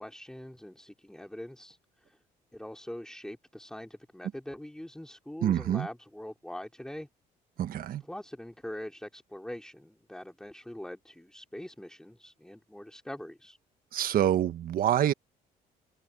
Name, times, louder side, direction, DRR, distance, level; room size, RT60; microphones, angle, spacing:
voice 1, 0.0-1.8 2.0-2.2 2.5-7.1 8.0-13.6, left 1 dB, 5° left, 3.0 m, -43 dB
voice 2, 5.4-5.9 7.6-8.0 13.9-15.1, right 11 dB, 60° right, 1.3 m, -26 dB
cardioid pair, 110°, 17 cm